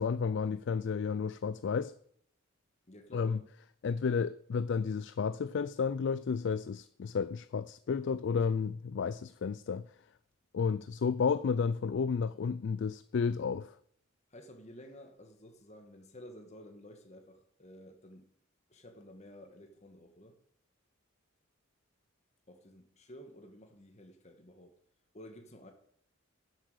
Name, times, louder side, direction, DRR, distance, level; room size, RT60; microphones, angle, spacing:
voice 1, 0.0-1.9 3.1-3.4 3.8-9.8 10.5-13.7, left 5 dB, 60° left, 0.3 m, -32 dB
voice 2, 2.9-3.4 14.3-18.3 18.7-20.4 22.5-24.8 25.1-25.7, left 1 dB, 35° left, 1.4 m, -52 dB
11.5 x 7.5 x 6.6 m
head